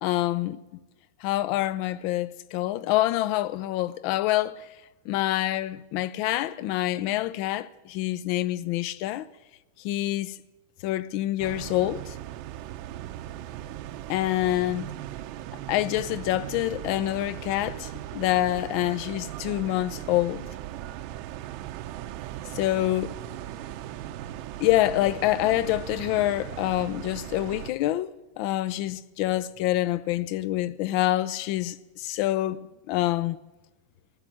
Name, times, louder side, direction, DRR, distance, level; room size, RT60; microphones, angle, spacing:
voice 1, 0.0-0.6 1.2-4.6 5.1-9.3 9.8-10.3 10.8-12.2 14.1-14.9 15.7-20.4 22.5-23.2 24.6-32.6 32.9-33.4, left 15 dB, 50° left, 0.5 m, -26 dB
sound 1, 11.4-27.7, right 12 dB, 50° right, 0.9 m, -38 dB
15.5 x 11.5 x 7.7 m
supercardioid pair, 150°, 0 cm